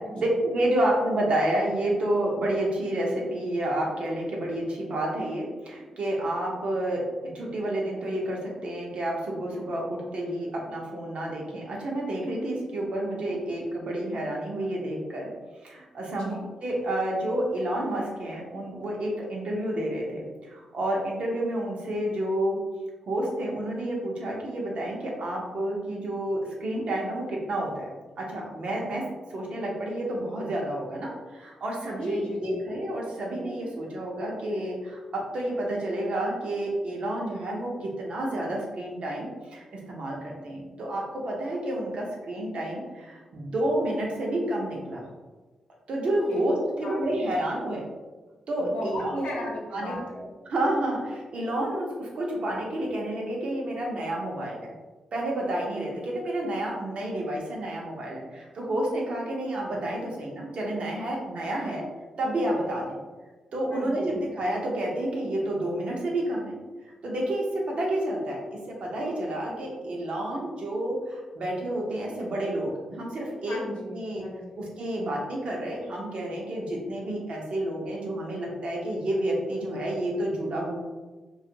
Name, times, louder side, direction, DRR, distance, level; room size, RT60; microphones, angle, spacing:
voice 1, 0.1-7.0 7.3-15.3 15.6-16.3 16.6-22.6 23.1-27.9 28.2-29.0 29.3-45.1 45.9-47.8 48.5-49.2 49.7-50.0 50.5-54.7 55.1-61.9 62.2-62.9 63.5-66.6 67.0-68.4 68.7-73.6 73.9-74.3 74.6-80.8, right 1 dB, 65° right, -2 dB, 0.7 m, -29 dB
voice 2, 16.1-16.5 32.0-32.6 46.3-46.4 46.8-47.0 48.6-50.3 63.7-64.2 73.5-74.6, left 1 dB, 70° left, -2 dB, 0.7 m, -37 dB
2.4 x 2.3 x 2.8 m, 1.3 s
supercardioid pair, 40°, 2 cm